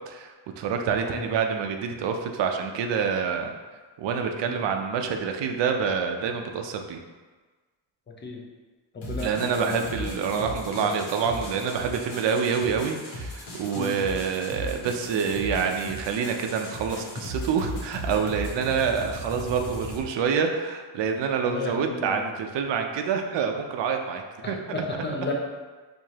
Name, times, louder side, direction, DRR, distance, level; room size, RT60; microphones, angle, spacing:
voice 1, 0.1-3.5 4.0-7.0 9.2-24.6, right 6 dB, 70° right, 4 dB, 0.6 m, -27 dB
voice 2, 8.9-10.1 10.5-10.9 13.7-13.9 21.4-22.2 24.4-25.3, left 3 dB, 25° left, -1 dB, 0.6 m, -33 dB
sound 1, 9.0-20.0, equal, 80° left, 1.1 m, -37 dB
4.6 x 2.6 x 2.8 m, 1.3 s
cardioid pair, 130°, 44 cm